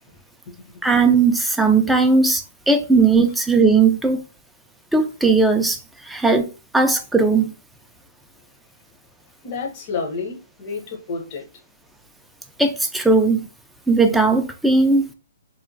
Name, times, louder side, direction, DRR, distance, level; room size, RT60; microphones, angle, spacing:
voice 1, 0.8-4.2 4.9-6.5 6.7-7.5 12.6-13.5 13.9-15.1, right 4 dB, 5° right, 0.3 m, -17 dB
voice 2, 9.4-11.5, left 4 dB, 40° left, 0.8 m, -30 dB
2.9 x 2.1 x 2.6 m
hypercardioid pair, 140°, 0 cm